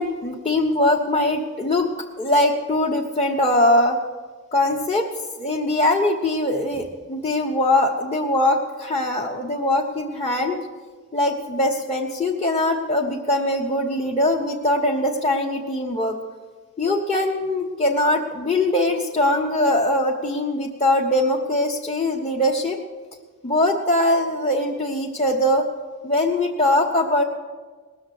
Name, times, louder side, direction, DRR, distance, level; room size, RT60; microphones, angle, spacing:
voice 1, 0.0-1.9 2.2-4.0 4.5-5.1 5.4-10.6 11.1-16.2 16.8-22.8 23.4-25.7 26.0-27.2, left 1 dB, 25° left, -2 dB, 1.0 m, -21 dB
19.5 x 6.9 x 8.3 m, 1.4 s
head